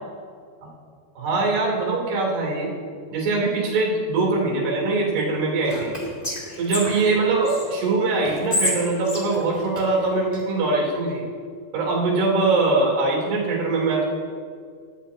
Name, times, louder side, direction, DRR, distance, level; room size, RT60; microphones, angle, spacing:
voice 1, 1.2-2.7 3.1-5.9 6.6-11.2 11.7-14.1, right 3 dB, 75° right, -2 dB, 5.1 m, -22 dB
Whispering, 5.6-7.6 8.2-10.4, left 2 dB, 25° left, 1.2 m, -29 dB
19.0 x 12.5 x 2.8 m, 2.2 s
omnidirectional pair, 4.7 m